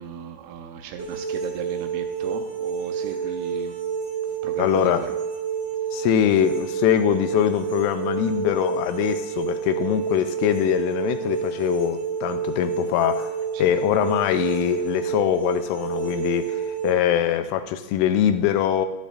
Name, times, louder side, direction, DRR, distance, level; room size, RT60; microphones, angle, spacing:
voice 1, 0.0-3.7 4.4-4.9 13.5-13.6, right 8 dB, 80° right, 5 dB, 3.0 m, -36 dB
sound 1, 1.0-16.9, right 7 dB, 60° right, 1.7 m, -29 dB
voice 2, 4.6-5.1 5.9-13.3 13.6-18.9, left 10 dB, 85° left, 9 dB, 3.0 m, -23 dB
12.0 x 11.5 x 2.4 m, 1.1 s
omnidirectional pair, 5.7 m